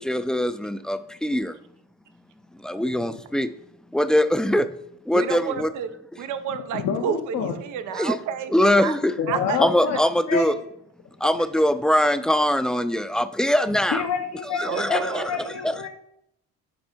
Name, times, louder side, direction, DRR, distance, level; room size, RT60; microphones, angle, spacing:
voice 1, 0.0-1.6 2.6-3.5 3.9-4.7 5.1-5.7 8.0-8.2 8.5-9.1 9.6-10.6 11.2-14.0 14.5-15.9, left 1 dB, ahead, 12 dB, 0.3 m, -22 dB
voice 2, 5.1-5.9 6.2-8.5 8.8-9.0 9.3-9.6 9.9-10.0 14.6-15.3, right 8 dB, 90° right, 9 dB, 0.6 m, -30 dB
voice 3, 6.7-7.6 9.2-10.0 10.3-10.5 13.9-15.9, left 6 dB, 70° left, 3 dB, 0.8 m, -27 dB
8.8 x 3.4 x 4.4 m, 0.75 s
cardioid pair, 90°, 30 cm